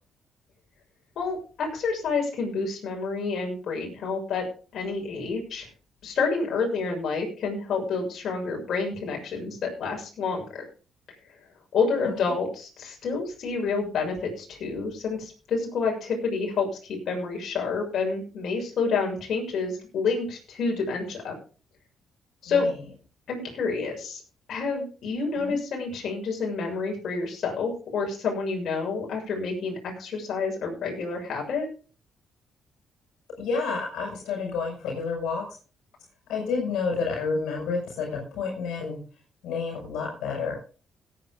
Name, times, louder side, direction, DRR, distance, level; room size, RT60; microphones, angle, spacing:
voice 1, 1.1-4.5 4.7-5.7 6.0-10.6 11.7-21.3 22.4-22.7 23.3-24.2 24.5-31.7, left 4 dB, 65° left, 0 dB, 6.9 m, -28 dB
voice 2, 22.5-22.8 25.4-25.6 33.4-35.4 36.3-39.0 39.4-40.6, left 4 dB, 85° left, 0 dB, 5.6 m, -29 dB
17.5 x 9.6 x 3.8 m, 0.37 s
cardioid pair, 90°, 0 cm